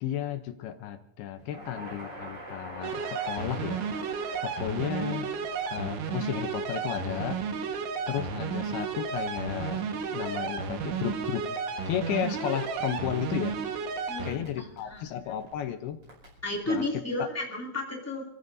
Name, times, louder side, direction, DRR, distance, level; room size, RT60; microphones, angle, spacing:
voice 1, 0.0-3.8 4.4-5.3 5.7-7.4 8.1-9.8 10.1-11.4 11.9-13.6 14.2-16.0 16.7-17.0, left 10 dB, 80° left, 7 dB, 2.3 m, -33 dB
Crackle, 1.4-16.8, right 1 dB, 30° right, 6.1 m, -49 dB
sound 1, 2.8-14.3, right 6 dB, 90° right, 3.7 m, -33 dB
voice 2, 14.1-15.2 16.4-18.2, left 2 dB, 5° left, -2 dB, 1.2 m, -33 dB
29.0 x 15.0 x 2.7 m, 0.84 s
omnidirectional pair, 5.4 m